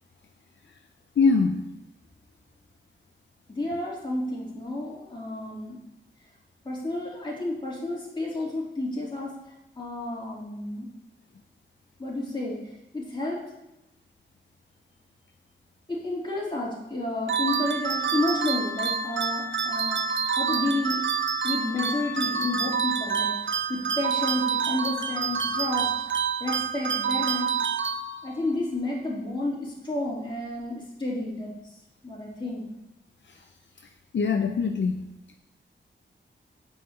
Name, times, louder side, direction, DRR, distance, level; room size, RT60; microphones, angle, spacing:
voice 1, 1.2-1.7 33.3-33.4 34.1-35.1, left 4 dB, 65° left, 5 dB, 0.7 m, -23 dB
voice 2, 3.5-5.8 6.6-9.3 9.8-10.9 12.0-12.6 12.9-13.4 15.9-21.0 21.4-25.9 26.4-27.5 28.2-31.5 32.0-32.7, left 2 dB, 25° left, -5 dB, 3.5 m, -31 dB
sound 1, 17.3-28.5, right 6 dB, 70° right, 0.7 m, -27 dB
9.3 x 5.0 x 7.5 m, 0.89 s
wide cardioid pair, 140°, 20 cm